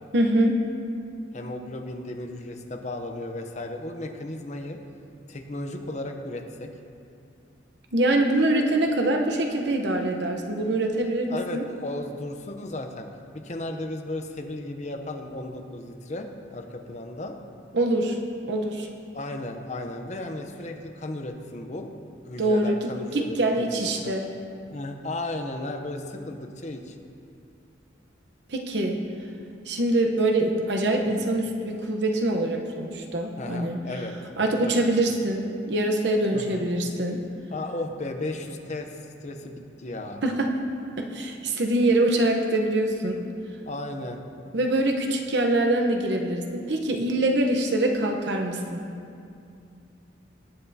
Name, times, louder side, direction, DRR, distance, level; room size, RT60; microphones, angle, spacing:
voice 1, 0.1-0.5 7.9-11.6 17.7-18.2 18.5-18.9 22.4-22.8 23.1-24.2 28.5-29.0 29.7-33.8 34.4-37.2 40.2-40.5 41.0-43.2 44.5-48.8, right 1 dB, 65° right, 3 dB, 0.9 m, -24 dB
voice 2, 1.3-4.8 5.3-6.7 11.3-17.4 19.1-21.9 22.3-24.1 24.7-27.0 31.1-31.2 33.4-34.2 34.6-34.9 36.3-36.7 37.5-40.2 43.6-44.2, left 2 dB, 40° left, 5 dB, 0.7 m, -35 dB
19.0 x 7.9 x 2.8 m, 2.5 s
head